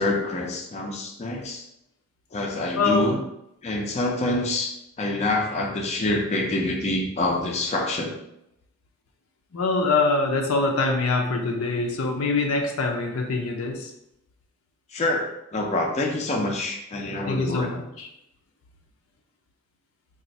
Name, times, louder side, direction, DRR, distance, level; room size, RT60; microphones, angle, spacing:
voice 1, 0.0-1.6 2.3-3.2 3.6-4.7 5.0-8.2 14.9-17.7, left 2 dB, 30° left, 0 dB, 0.4 m, -26 dB
voice 2, 2.7-3.2 9.5-13.9 17.3-18.1, left 3 dB, 85° left, 2 dB, 0.6 m, -24 dB
2.5 x 2.4 x 4.0 m, 0.81 s
head